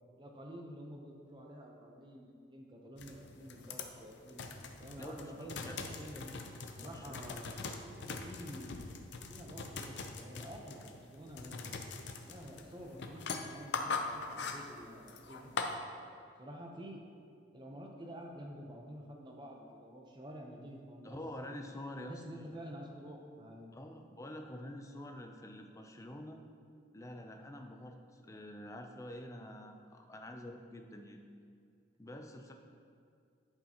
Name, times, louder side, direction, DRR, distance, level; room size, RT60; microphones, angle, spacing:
voice 1, 0.2-4.5 4.8-6.4 6.8-8.9 9.3-11.8 12.2-15.7 16.4-17.0 17.5-21.5 22.0-23.8, equal, 25° right, 0 dB, 0.8 m, -49 dB
sound 1, 3.0-15.8, left 4 dB, 65° left, 0.6 m, -42 dB
voice 2, 5.0-5.8 6.8-7.2 21.0-22.6 23.7-26.4 26.9-31.2 32.0-32.5, left 1 dB, 15° left, 4 dB, 0.5 m, -47 dB
11.5 x 5.0 x 2.9 m, 2.3 s
head